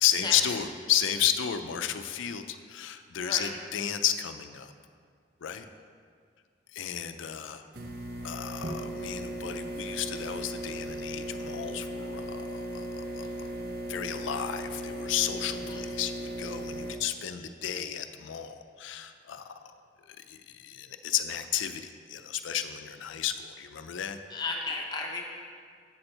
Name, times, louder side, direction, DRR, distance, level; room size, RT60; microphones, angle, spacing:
voice 1, 0.0-4.7 5.4-5.7 6.7-7.6 8.2-13.4 13.9-19.5 20.1-24.2, left 10 dB, 85° left, 9 dB, 0.4 m, -32 dB
sound 1, 7.7-17.0, right 1 dB, 50° right, 0.6 m, -37 dB
voice 2, 15.5-15.8 24.3-25.2, left 3 dB, 20° left, 0 dB, 0.7 m, -34 dB
7.8 x 4.4 x 6.5 m, 2.1 s
head